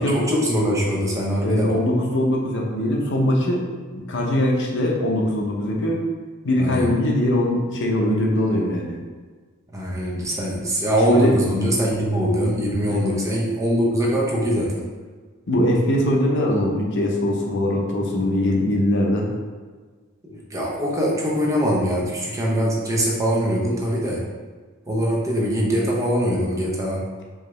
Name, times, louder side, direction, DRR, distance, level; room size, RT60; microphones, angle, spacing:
voice 1, 0.0-1.7 6.6-6.9 9.7-14.8 20.2-24.2 24.9-27.0, equal, 15° right, -3 dB, 0.6 m, -22 dB
voice 2, 1.4-6.1 6.4-9.0 11.1-11.3 12.8-13.2 15.5-19.3, left 1 dB, 60° left, -1 dB, 0.7 m, -21 dB
4.8 x 2.8 x 3.1 m, 1.4 s
head